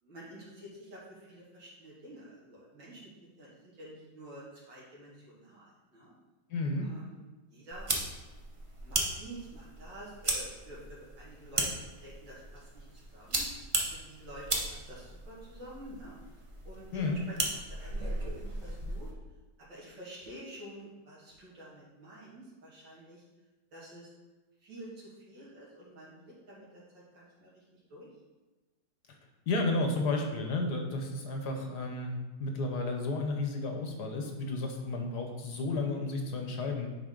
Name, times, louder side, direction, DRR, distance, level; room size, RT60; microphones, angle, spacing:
voice 1, 0.0-3.1 3.4-6.1 6.8-7.2 7.5-7.9 8.8-12.9 13.1-13.5 13.9-16.2 16.6-17.4 17.7-19.1 19.6-23.2 23.7-24.1 24.6-28.1 31.5-31.7, right 1 dB, 75° right, -6 dB, 2.7 m, -49 dB
voice 2, 6.5-6.9 16.9-17.2 29.5-36.9, left 2 dB, 65° left, 3 dB, 1.4 m, -32 dB
sound 1, 7.7-19.1, right 2 dB, 50° right, 0.3 m, -36 dB
9.5 x 3.9 x 3.8 m, 1.2 s
omnidirectional pair, 2.0 m